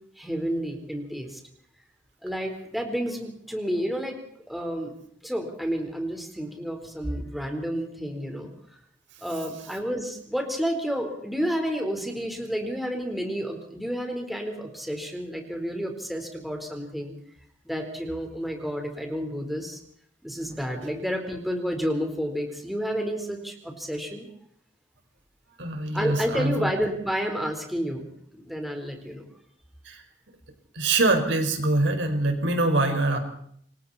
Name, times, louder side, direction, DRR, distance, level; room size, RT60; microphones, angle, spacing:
voice 1, 0.2-1.4 2.2-4.2 4.5-4.9 5.2-8.5 9.2-17.1 17.6-19.8 20.2-24.3 25.9-29.2, equal, ahead, 3 dB, 4.4 m, -30 dB
voice 2, 25.6-26.7 29.9-30.0 30.7-33.2, right 2 dB, 70° right, 5 dB, 5.3 m, -24 dB
29.0 x 24.5 x 4.4 m, 0.65 s
head